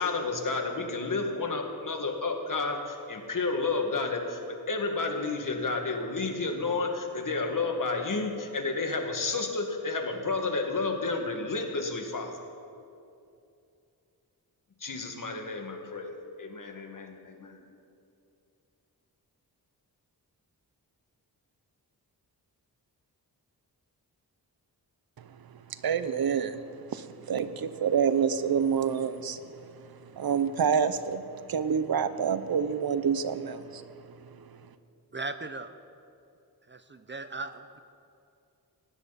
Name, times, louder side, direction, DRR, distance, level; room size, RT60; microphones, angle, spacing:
voice 1, 0.0-12.4 14.8-17.7, left 3 dB, 55° left, 3 dB, 2.1 m, -31 dB
voice 2, 25.7-26.6 26.9-33.8 34.3-34.4, right 7 dB, 65° right, 12 dB, 0.8 m, -28 dB
voice 3, 35.1-35.7 36.7-37.8, right 3 dB, 30° right, 10 dB, 0.7 m, -38 dB
18.5 x 16.0 x 4.2 m, 2.6 s
cardioid pair, 75°, 39 cm